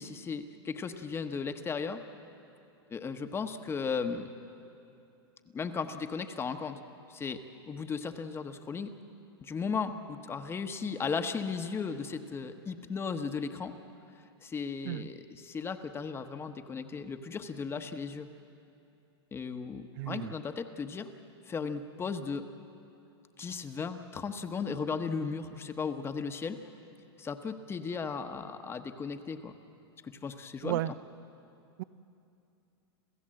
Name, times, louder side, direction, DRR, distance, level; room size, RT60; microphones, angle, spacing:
voice 1, 0.0-2.0 2.9-4.3 5.5-6.8 7.1-7.4 7.7-8.9 9.4-13.7 14.4-18.3 19.3-21.1 21.5-22.4 23.4-26.6 27.2-29.5 30.0-30.9, left 5 dB, 20° left, 8 dB, 1.1 m, -36 dB
voice 2, 20.0-20.3 30.6-30.9 31.8-31.9, right 15 dB, 60° right, 17 dB, 0.6 m, -33 dB
28.0 x 15.0 x 7.7 m, 2.7 s
hypercardioid pair, 125°, 14 cm